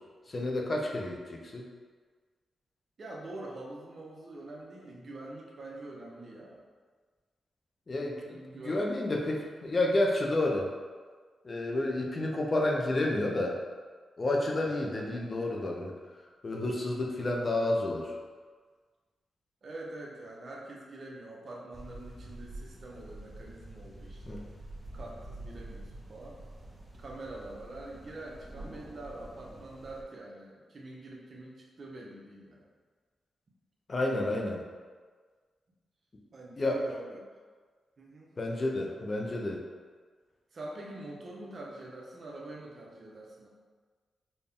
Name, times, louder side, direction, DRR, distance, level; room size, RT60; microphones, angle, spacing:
voice 1, 0.3-1.7 7.9-8.4 8.6-10.7 11.4-13.6 14.2-15.9 16.4-18.1 24.3-24.4 33.9-34.6 36.6-36.8 38.4-39.6, left 2 dB, 35° left, 0 dB, 0.5 m, -30 dB
voice 2, 3.0-6.6 8.3-8.8 14.7-15.0 19.6-24.4 24.9-26.4 26.9-32.7 36.3-37.2 38.0-38.3 40.5-43.5, right 2 dB, 50° right, -3 dB, 0.8 m, -45 dB
sound 1, 21.7-30.0, right 1 dB, 15° right, 0.7 m, -47 dB
4.1 x 2.2 x 3.5 m, 1.5 s
cardioid pair, 90°, 0 cm